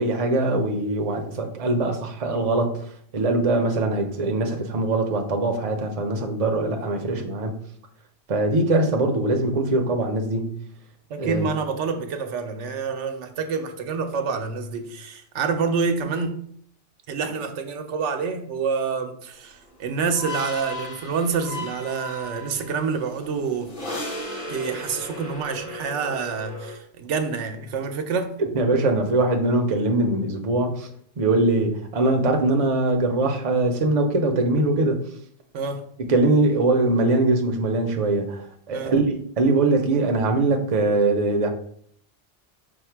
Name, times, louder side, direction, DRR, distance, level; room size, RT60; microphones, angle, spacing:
voice 1, 0.0-2.8 3.1-7.6 8.3-10.5 11.2-11.5 28.4-35.0 36.0-41.5, right 2 dB, 45° right, 0.5 m, -22 dB
voice 2, 11.1-16.4 17.1-23.7 24.5-28.3 35.5-35.8 38.7-38.9, right 5 dB, 90° right, 0.9 m, -27 dB
sound 1, 19.5-26.8, left 1 dB, 35° left, 0.9 m, -36 dB
5.1 x 2.1 x 4.4 m
omnidirectional pair, 1.2 m